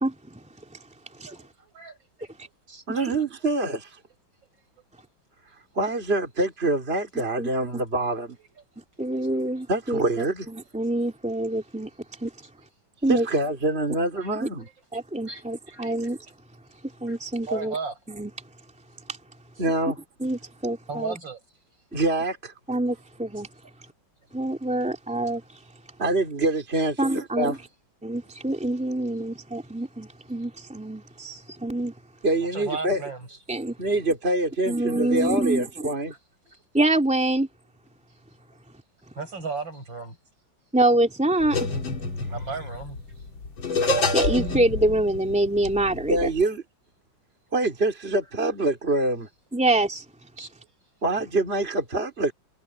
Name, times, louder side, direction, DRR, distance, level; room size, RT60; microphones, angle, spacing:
voice 1, 0.0-0.4 1.2-1.3 3.0-3.1 7.4-7.5 9.0-11.9 12.2-12.3 13.0-13.3 14.4-14.5 14.9-16.2 17.0-17.7 18.1-18.3 20.2-21.2 22.7-23.5 24.3-25.4 27.0-27.6 28.0-31.9 33.5-33.8 34.7-35.7 36.7-37.5 40.7-41.7 44.1-46.3 49.5-50.0, right 1 dB, 5° right, 3.0 m, -25 dB
voice 2, 1.3-2.3 2.7-2.8 3.1-3.2 9.1-9.4 14.1-14.3 15.3-15.9 17.1-17.2 17.4-18.0 20.9-21.4 32.5-33.3 36.5-36.6 39.2-40.2 42.3-43.0 50.4-50.7, right 4 dB, 70° right, 8.2 m, -35 dB
voice 3, 2.9-3.9 5.8-8.4 9.7-10.5 13.1-14.7 19.6-20.0 21.9-22.5 26.0-27.6 32.2-33.0 33.8-36.1 46.1-46.6 47.5-49.3 51.0-52.3, right 2 dB, 30° right, 3.7 m, -25 dB
sound 1, 41.4-46.4, left 2 dB, 85° left, 3.4 m, -28 dB
omnidirectional pair, 2.1 m